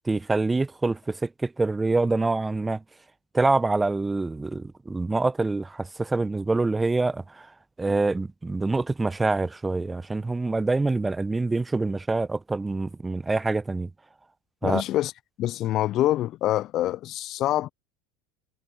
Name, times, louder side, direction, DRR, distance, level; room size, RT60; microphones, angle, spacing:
voice 1, 0.0-2.8 3.3-7.5 7.8-13.9 14.6-14.8, right 3 dB, 15° right, 1.3 m, -25 dB
voice 2, 14.6-15.1 15.4-17.7, left 14 dB, 45° left, 0.7 m, -25 dB
figure-of-eight pair, 75°, 0 cm